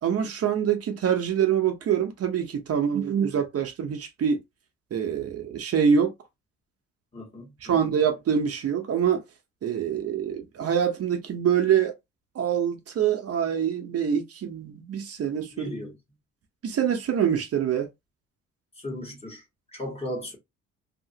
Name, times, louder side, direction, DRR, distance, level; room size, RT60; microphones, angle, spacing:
voice 1, 0.0-4.4 4.9-6.1 7.6-9.2 9.6-11.9 12.3-15.7 16.6-17.9, right 8 dB, 55° right, 0.8 m, -25 dB
voice 2, 7.1-7.9 15.5-16.0 18.8-19.4 19.7-20.4, left 1 dB, 20° left, 1.5 m, -36 dB
2.8 x 2.7 x 2.7 m
cardioid pair, 90°, 30 cm